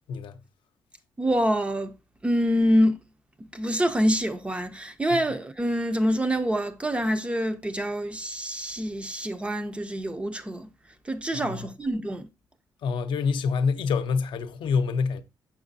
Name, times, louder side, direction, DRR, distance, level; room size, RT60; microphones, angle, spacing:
voice 1, 1.2-1.9 2.2-3.0 3.4-10.7 11.1-12.3, equal, 15° right, 0.4 m, -26 dB
voice 2, 11.3-11.7 12.8-15.2, left 5 dB, 70° left, 0.5 m, -26 dB
6.5 x 6.0 x 2.6 m
cardioid pair, 145°, 9 cm